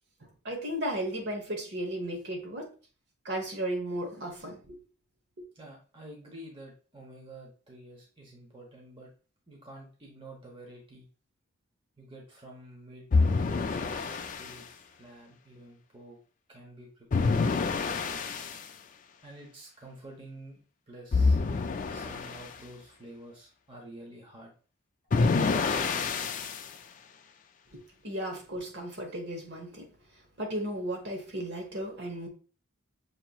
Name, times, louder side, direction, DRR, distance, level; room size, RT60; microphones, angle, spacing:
voice 1, 0.4-2.7 3.2-4.8 27.7-29.9 30.4-32.3, right 1 dB, 50° right, 1.1 m, -35 dB
voice 2, 5.5-9.1 9.5-11.0 12.0-13.1 13.4-16.2 16.5-18.3 19.2-20.6 20.9-21.4 21.9-24.5 25.2-25.5 25.8-26.4, right 1 dB, 25° right, 0.9 m, -49 dB
sound 1, 13.1-14.5 17.1-18.6 21.1-22.5 25.1-26.7, left 4 dB, 35° left, 0.3 m, -27 dB
6.7 x 3.0 x 2.3 m
head